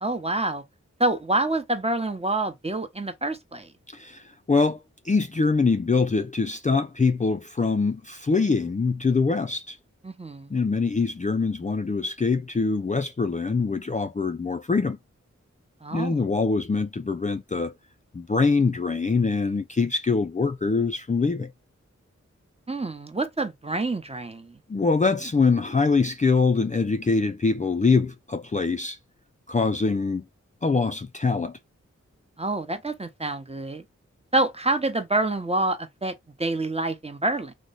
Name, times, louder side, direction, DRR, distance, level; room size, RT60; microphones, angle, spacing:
voice 1, 0.0-0.6 1.0-3.7 10.0-10.5 15.8-16.3 22.7-24.6 32.4-33.8 34.3-37.5, right 2 dB, 20° right, 0.9 m, -27 dB
voice 2, 3.9-9.8 10.5-15.0 15.9-17.7 18.1-21.5 24.7-29.0 29.5-30.2 30.6-31.6, left 4 dB, 25° left, 0.4 m, -24 dB
3.1 x 2.1 x 3.8 m
cardioid pair, 40°, 29 cm